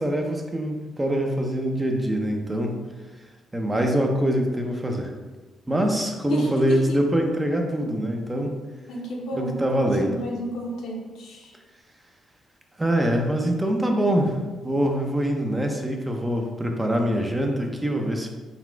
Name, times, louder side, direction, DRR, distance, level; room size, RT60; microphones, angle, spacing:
voice 1, 0.0-2.8 3.5-5.1 5.7-8.6 9.3-10.2 12.8-14.4 14.6-18.3, right 1 dB, 15° right, 2 dB, 0.6 m, -24 dB
voice 2, 6.3-7.0 8.9-9.5 10.0-11.5, left 1 dB, 80° left, -2 dB, 1.0 m, -32 dB
4.0 x 2.3 x 4.4 m, 1.2 s
cardioid pair, 90°, 0 cm